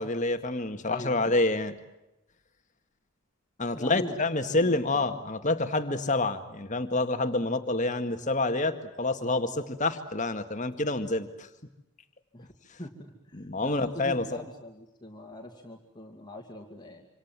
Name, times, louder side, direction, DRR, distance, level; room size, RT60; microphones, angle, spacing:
voice 1, 0.0-1.8 3.6-11.5 12.7-12.8 13.3-14.4, left 2 dB, 35° left, 8 dB, 1.9 m, -28 dB
voice 2, 0.8-1.4 3.7-5.0 12.3-12.5 12.8-17.1, left 1 dB, 20° left, 2 dB, 2.5 m, -42 dB
27.0 x 27.0 x 7.5 m, 0.89 s
head